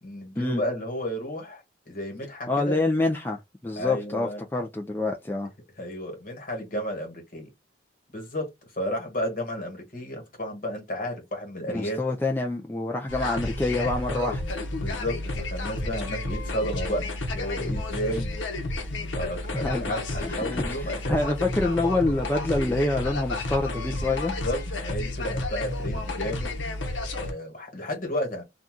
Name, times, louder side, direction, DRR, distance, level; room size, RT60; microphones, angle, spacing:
voice 1, 0.0-2.8 3.8-4.4 5.8-7.5 8.1-8.5 8.8-12.0 14.8-18.3 19.0-21.2 24.4-26.5 27.1-28.4, equal, 50° left, 1.4 m, -32 dB
voice 2, 2.5-5.5 11.7-14.6 19.5-19.9 20.2-24.3, left 2 dB, 10° left, 0.4 m, -27 dB
sound 1, 13.1-27.3, left 2 dB, 85° left, 0.8 m, -31 dB
2.7 x 2.3 x 3.6 m
head